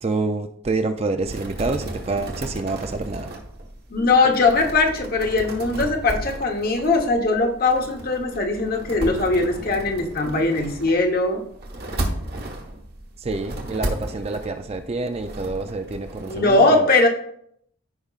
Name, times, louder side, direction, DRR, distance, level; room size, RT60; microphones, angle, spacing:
voice 1, 0.0-3.3 13.2-16.9, right 3 dB, 30° right, 7 dB, 0.4 m, -27 dB
sound 1, 1.2-16.6, right 1 dB, 45° right, 1.2 m, -34 dB
voice 2, 3.9-11.4 16.3-17.1, left 3 dB, 40° left, 3 dB, 1.1 m, -20 dB
14.5 x 5.0 x 2.4 m, 0.69 s
head